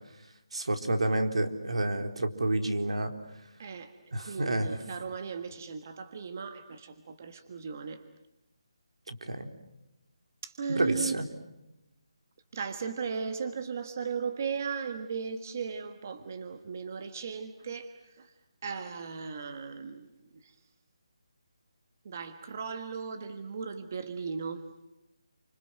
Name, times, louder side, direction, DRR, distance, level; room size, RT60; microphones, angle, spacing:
voice 1, 0.5-3.1 4.1-4.7 9.1-9.5 10.7-11.2, right 2 dB, 80° right, 7 dB, 4.0 m, -29 dB
voice 2, 3.6-8.0 10.4-11.1 12.5-18.3 18.6-20.1 20.4-20.5 22.0-24.7, right 5 dB, 30° right, 9 dB, 1.5 m, -37 dB
29.5 x 26.0 x 7.8 m, 0.93 s
hypercardioid pair, 175°, 3 cm